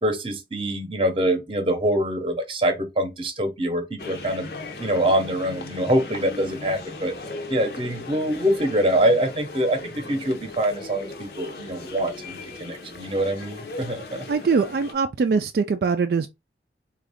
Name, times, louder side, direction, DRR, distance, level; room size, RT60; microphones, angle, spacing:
voice 1, 0.0-4.5 4.8-7.1 7.5-14.2, right 1 dB, 30° right, 0.8 m, -24 dB
sound 1, 4.0-14.9, left 3 dB, 65° left, 0.7 m, -38 dB
voice 2, 14.3-16.3, right 5 dB, 60° right, 0.3 m, -22 dB
3.6 x 2.4 x 3.5 m
head